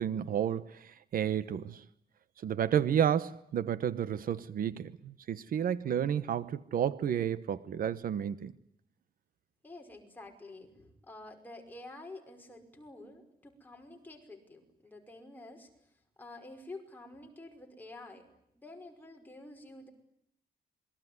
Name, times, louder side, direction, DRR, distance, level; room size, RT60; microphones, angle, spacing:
voice 1, 0.0-1.8 2.4-8.5, right 9 dB, 60° right, 1.0 m, -31 dB
voice 2, 9.6-18.3 18.5-19.9, left 2 dB, 10° left, 5.5 m, -49 dB
27.0 x 22.5 x 9.6 m
wide cardioid pair, 180°, 17 cm